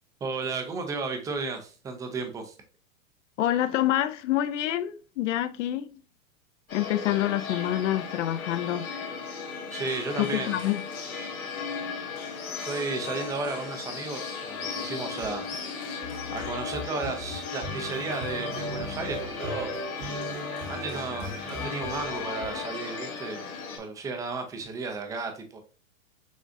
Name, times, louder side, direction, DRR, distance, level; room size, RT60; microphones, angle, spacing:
voice 1, 0.2-2.6 9.7-10.6 12.6-15.4 16.3-19.7 20.7-23.4 23.8-25.6, right 4 dB, 10° right, 0.4 m, -34 dB
voice 2, 3.4-6.0 6.7-8.9 10.2-10.8, left 13 dB, 60° left, 0.5 m, -27 dB
sound 1, 6.7-23.8, left 5 dB, 85° left, 1.3 m, -36 dB
sound 2, 14.7-23.1, left 4 dB, 40° left, 1.0 m, -39 dB
sound 3, 15.2-15.6 16.1-23.3, right 3 dB, 60° right, 1.3 m, -39 dB
6.2 x 2.4 x 2.5 m
hypercardioid pair, 120°, 41 cm